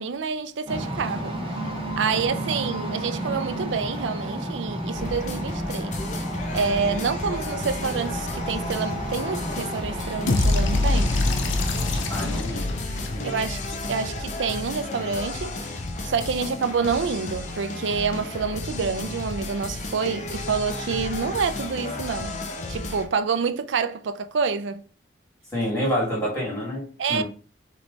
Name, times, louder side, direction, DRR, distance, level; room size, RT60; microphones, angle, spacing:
voice 1, 0.0-1.4 2.0-6.0 6.5-11.1 13.2-22.4 22.7-24.8 27.0-27.2, right 5 dB, 75° right, 0.4 m, -27 dB
sound 1, 0.7-12.4, right 1 dB, 30° right, 1.0 m, -32 dB
sound 2, 4.9-23.0, left 2 dB, 40° left, 0.6 m, -33 dB
sound 3, 10.3-14.4, left 2 dB, 85° left, 0.6 m, -25 dB
voice 2, 12.1-12.8 13.1-13.3 25.5-27.2, equal, 15° left, 2.2 m, -28 dB
3.3 x 3.1 x 4.0 m
head